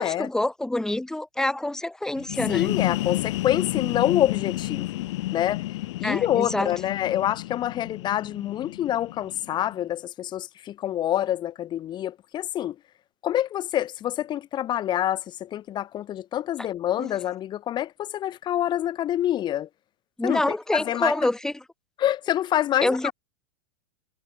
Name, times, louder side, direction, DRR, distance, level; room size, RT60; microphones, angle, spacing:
voice 1, 0.0-2.8 6.0-6.7 17.0-17.1 20.2-21.6 22.8-23.1, left 1 dB, 5° left, 1.5 m, -26 dB
sound 1, 2.2-9.8, left 17 dB, 65° left, 6.3 m, -31 dB
voice 2, 2.5-5.0 5.3-5.6 6.0-12.7 13.2-19.7 20.2-20.4 20.7-21.1 22.0-23.1, left 12 dB, 30° left, 1.6 m, -26 dB
supercardioid pair, 135°, 16 cm